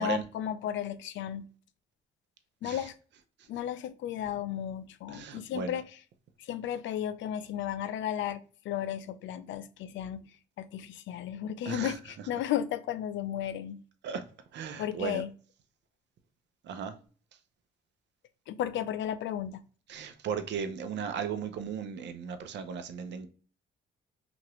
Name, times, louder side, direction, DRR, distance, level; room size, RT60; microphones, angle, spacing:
voice 1, 0.0-1.5 2.6-2.9 3.5-5.8 6.4-10.3 10.6-13.8 14.8-15.3 18.5-19.6, left 10 dB, 70° left, 0.4 m, -34 dB
voice 2, 5.1-5.8 11.6-12.3 14.0-14.2 14.5-15.2 16.6-17.0 19.9-23.3, right 6 dB, 65° right, 0.5 m, -36 dB
2.8 x 2.5 x 2.9 m
cardioid pair, 90°, 20 cm